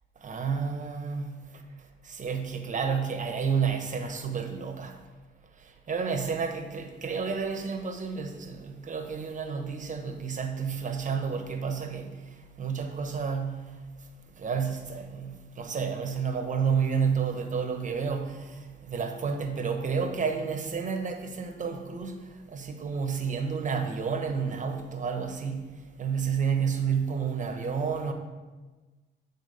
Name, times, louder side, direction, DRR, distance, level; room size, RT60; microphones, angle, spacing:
voice 1, 0.2-1.4 2.0-4.9 5.9-12.2 12.6-13.7 14.4-22.2 22.5-25.7 26.0-28.1, right 6 dB, 40° right, 1.1 m, -30 dB
8.2 x 4.2 x 5.6 m
cardioid pair, 90°, 20 cm